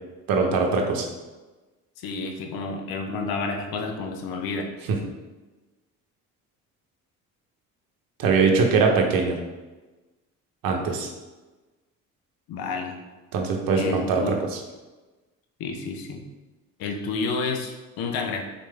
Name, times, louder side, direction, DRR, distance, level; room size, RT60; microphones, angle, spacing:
voice 1, 0.3-1.1 4.9-5.0 8.2-9.4 10.6-11.1 13.3-14.6, right 4 dB, 60° right, 2 dB, 0.8 m, -22 dB
voice 2, 2.0-4.7 12.5-13.0 13.7-14.3 15.6-16.2 16.8-18.4, left 4 dB, 65° left, 3 dB, 0.7 m, -30 dB
4.2 x 3.2 x 3.3 m, 1.2 s
hypercardioid pair, 55°, 39 cm